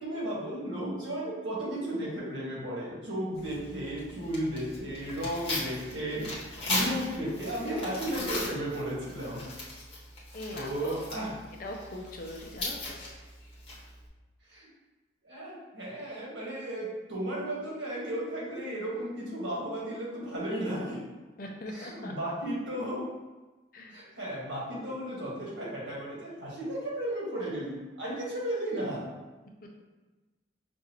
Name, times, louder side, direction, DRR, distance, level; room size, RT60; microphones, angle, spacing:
voice 1, 0.0-6.3 6.7-9.4 10.5-11.3 14.5-14.7 15.2-21.1 21.7-23.1 23.9-29.1, right 1 dB, 90° right, -5 dB, 1.4 m, -34 dB
Tearing, 3.3-14.1, left 2 dB, 30° left, 0.9 m, -38 dB
voice 2, 10.3-10.9 11.6-13.0 21.4-22.1 23.7-24.0, left 1 dB, 50° left, 1 dB, 0.5 m, -41 dB
5.8 x 2.5 x 2.9 m, 1.2 s
head